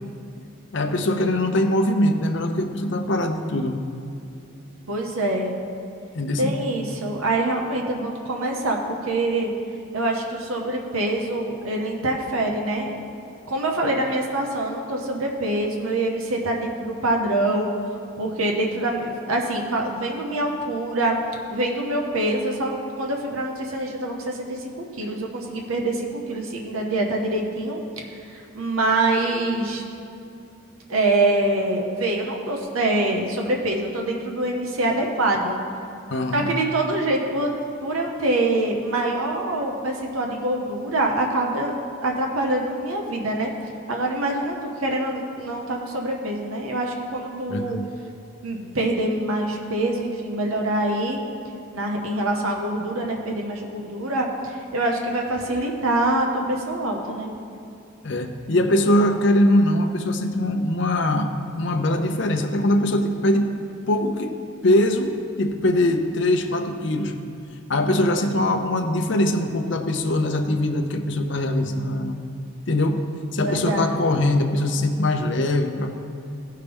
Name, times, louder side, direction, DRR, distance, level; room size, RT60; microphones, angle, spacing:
voice 1, 0.7-3.8 6.1-6.6 36.1-36.4 47.5-47.9 58.0-61.3 61.6-63.5 63.9-64.3 64.6-65.1 65.4-67.1 67.7-72.2 72.7-73.0 73.3-76.0, left 1 dB, 55° left, 5 dB, 0.7 m, -22 dB
voice 2, 4.9-5.5 6.4-9.5 9.9-12.9 13.5-17.7 18.2-21.2 21.5-29.8 30.9-35.5 36.3-37.5 37.8-41.8 42.0-43.5 43.9-47.8 48.4-51.2 51.7-57.3 73.4-74.0, right 2 dB, 85° right, 1 dB, 0.9 m, -25 dB
15.5 x 5.7 x 3.5 m, 2.5 s
head